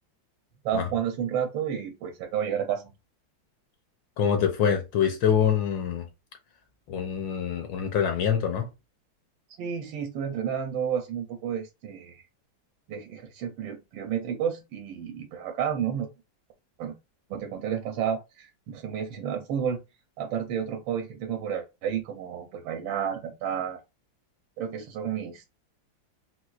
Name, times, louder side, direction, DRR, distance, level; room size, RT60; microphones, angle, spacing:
voice 1, 0.6-2.9 9.6-12.2 12.9-16.1 16.8-17.0 17.3-19.8 20.2-23.8 24.6-25.5, right 8 dB, 85° right, 1.3 m, -31 dB
voice 2, 4.2-6.1 6.9-8.7, left 8 dB, 75° left, 1.4 m, -25 dB
4.3 x 2.2 x 2.4 m
omnidirectional pair, 2.1 m